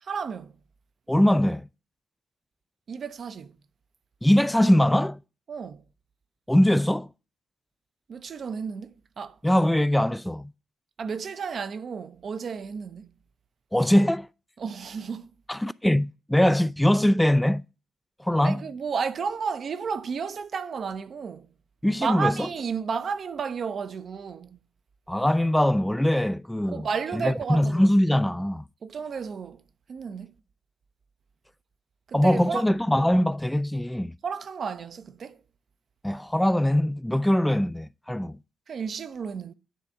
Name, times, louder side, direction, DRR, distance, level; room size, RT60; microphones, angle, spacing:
voice 1, 0.0-0.6 2.9-3.6 5.5-5.8 8.1-9.4 11.0-13.1 14.6-15.3 18.4-21.5 22.0-24.6 26.7-27.9 28.8-29.6 29.9-30.3 32.1-32.7 34.2-35.4 38.7-39.5, right 6 dB, 55° right, 0.6 m, -32 dB
voice 2, 1.1-1.7 4.2-5.2 6.5-7.1 9.4-10.5 13.7-14.3 15.5-17.6 18.2-18.6 21.8-22.5 25.1-26.9 27.1-28.6 32.1-34.1 36.0-38.4, left 1 dB, 5° left, 0.3 m, -22 dB
9.1 x 3.4 x 6.8 m
hypercardioid pair, 40°, 0 cm